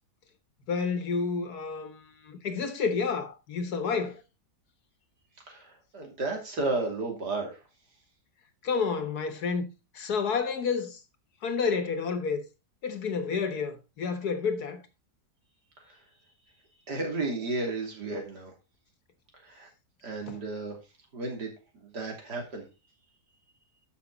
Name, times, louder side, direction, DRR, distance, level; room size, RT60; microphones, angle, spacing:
voice 1, 0.7-4.2 8.6-9.7 9.9-11.0 11.4-12.4 12.8-14.8 20.3-20.4, left 5 dB, 70° left, 1.9 m, -30 dB
voice 2, 5.5-7.6 15.9-16.0 16.9-18.5 19.4-19.7 20.0-20.8 21.1-21.5 21.8-22.7, right 3 dB, 90° right, 3.5 m, -33 dB
12.5 x 6.0 x 4.0 m
omnidirectional pair, 1.7 m